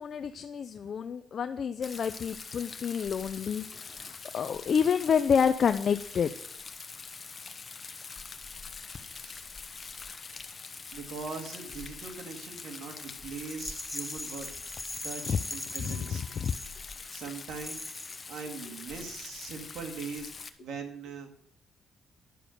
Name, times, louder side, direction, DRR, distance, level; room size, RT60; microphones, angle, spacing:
voice 1, 0.0-6.3 15.3-15.4 15.8-16.5, left 7 dB, 55° left, 9 dB, 0.6 m, -29 dB
Rain, 1.8-20.5, left 4 dB, 35° left, 1.0 m, -44 dB
voice 2, 10.9-14.5 15.0-16.2 17.1-17.8 18.3-21.3, right 5 dB, 75° right, 3 dB, 2.3 m, -41 dB
Rattle, 13.5-17.1 17.6-18.3, left 1 dB, 10° left, 1.0 m, -40 dB
11.0 x 6.8 x 6.5 m, 0.67 s
cardioid pair, 90°, 0 cm